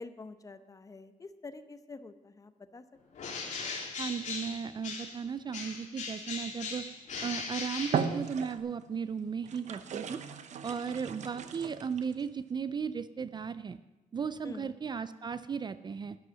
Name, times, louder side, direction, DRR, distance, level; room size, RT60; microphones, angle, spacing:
voice 1, 0.0-2.8 3.1-3.3 14.4-14.7, left 3 dB, 25° left, 11 dB, 0.7 m, -47 dB
Bird, 3.1-5.2 5.5-8.6, left 4 dB, 60° left, 2.8 m, -39 dB
voice 2, 4.0-6.9 7.2-10.2 10.6-13.8 14.1-16.2, right 6 dB, 30° right, 14 dB, 0.4 m, -36 dB
sound 1, 7.2-7.4 7.8-8.9 9.4-12.2, right 7 dB, 60° right, 0.8 m, -37 dB
11.0 x 10.5 x 6.2 m, 1.1 s
cardioid pair, 130°, 14 cm